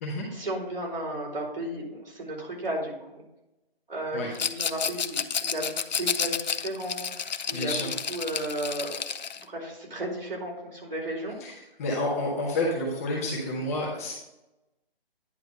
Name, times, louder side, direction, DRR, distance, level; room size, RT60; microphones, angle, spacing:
voice 1, 0.3-3.2 3.9-5.6 6.0-7.7 8.1-8.9 9.4-11.4, right 1 dB, 70° right, -2 dB, 3.3 m, -34 dB
Rattle, 4.3-9.4, left 7 dB, 50° left, 0.4 m, -31 dB
voice 2, 7.5-7.9 11.4-11.5 11.8-14.1, left 1 dB, 15° left, -3 dB, 0.9 m, -29 dB
9.7 x 3.2 x 6.3 m, 0.92 s
hypercardioid pair, 160°, 29 cm